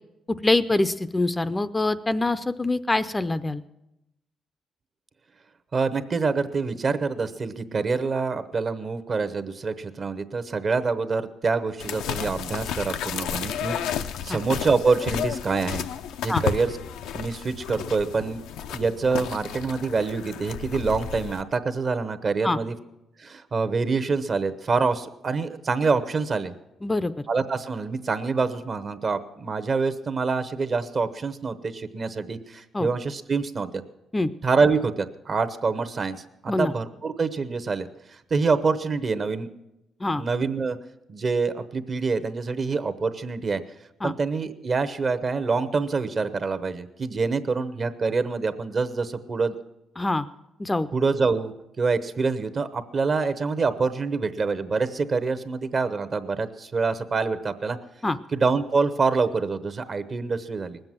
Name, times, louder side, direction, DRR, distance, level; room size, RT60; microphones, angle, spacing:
voice 1, 0.3-3.6 14.3-14.4 16.3-16.4 22.4-22.6 26.8-27.2 32.7-32.9 34.1-34.3 36.5-36.7 40.0-40.2 44.0-44.1 50.0-50.3 50.6-50.9 58.0-58.2, left 2 dB, 15° left, 12 dB, 0.5 m, -24 dB
voice 2, 5.7-15.8 16.2-16.7 17.1-18.4 18.7-22.7 23.2-26.5 27.3-33.8 34.4-37.9 38.3-39.5 40.2-40.8 41.1-43.6 44.0-49.5 50.9-57.8 58.3-60.8, right 4 dB, 40° right, 11 dB, 0.9 m, -26 dB
sound 1, 11.8-21.4, left 9 dB, 90° left, 0.5 m, -32 dB
19.5 x 7.9 x 7.5 m, 0.89 s
cardioid pair, 90°, 0 cm